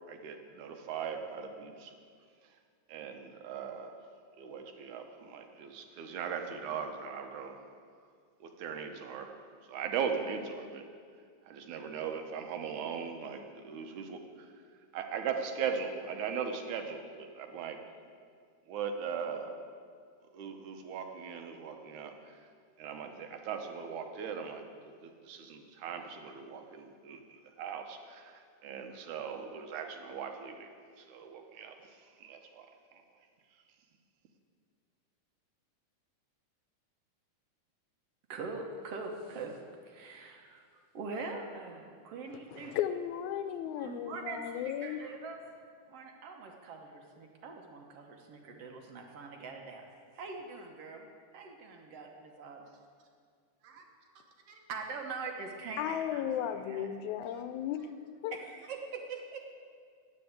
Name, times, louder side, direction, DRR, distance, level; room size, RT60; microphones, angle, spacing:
voice 1, 0.1-1.9 2.9-4.0 4.4-7.6 8.4-9.3 9.7-10.8 11.5-14.5 14.9-17.8 18.7-19.6 20.3-22.4 22.8-30.7 31.0-32.7 32.9-33.0, right 6 dB, 80° right, 5 dB, 2.4 m, -39 dB
voice 2, 38.3-39.6 39.8-40.7 40.9-42.8 43.8-45.4 45.9-51.1 51.3-52.8 53.6-53.9 54.2-56.9 57.2-57.4 58.3-59.4, right 4 dB, 65° right, 2 dB, 1.8 m, -43 dB
voice 3, 42.5-45.0 55.8-57.8 58.2-58.4, left 10 dB, 80° left, 10 dB, 2.0 m, -35 dB
9.2 x 9.1 x 7.9 m, 2.1 s
omnidirectional pair, 3.4 m